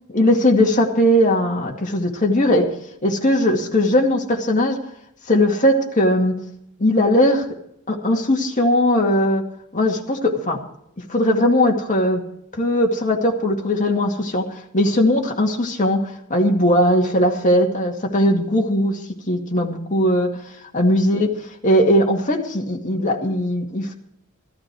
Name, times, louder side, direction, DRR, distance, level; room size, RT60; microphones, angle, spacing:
voice 1, 0.1-2.7 3.0-4.8 5.3-6.3 6.8-7.5 7.9-9.4 9.7-10.6 11.1-12.2 12.6-19.0 19.3-20.3 20.7-21.3 21.6-23.9, left 1 dB, 35° left, 1 dB, 2.2 m, -19 dB
15.0 x 13.5 x 4.8 m, 0.73 s
head